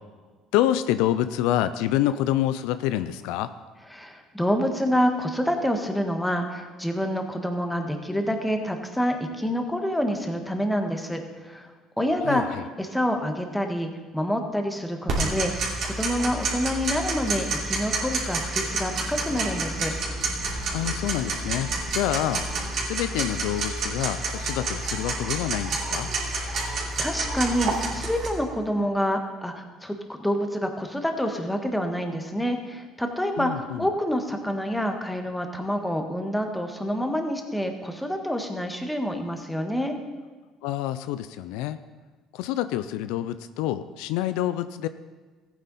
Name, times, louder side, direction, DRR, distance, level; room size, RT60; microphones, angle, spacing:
voice 1, 0.5-3.5 12.2-12.7 20.7-22.5 22.8-26.1 33.4-33.9 40.6-41.8 42.3-44.9, left 12 dB, 80° left, 12 dB, 0.4 m, -27 dB
voice 2, 3.9-11.7 12.0-19.9 26.2-39.9, equal, 5° left, 4 dB, 1.5 m, -27 dB
Tick-tock, 15.1-28.3, right 3 dB, 60° right, 2.9 m, -29 dB
14.5 x 9.2 x 4.1 m, 1.4 s
supercardioid pair, 90°, 0 cm